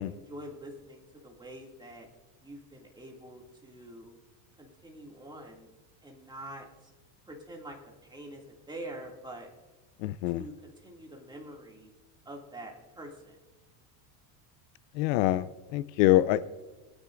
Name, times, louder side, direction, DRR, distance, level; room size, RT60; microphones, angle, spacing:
voice 1, 0.0-2.1 2.4-4.1 4.6-5.7 6.0-6.9 7.2-7.8 8.0-9.5 10.3-11.9 12.3-13.4, right 1 dB, 10° right, 2.2 m, -45 dB
voice 2, 10.0-10.4 15.0-15.5 15.7-16.5, left 15 dB, 70° left, 0.6 m, -25 dB
21.5 x 9.9 x 2.5 m
supercardioid pair, 125°, 50 cm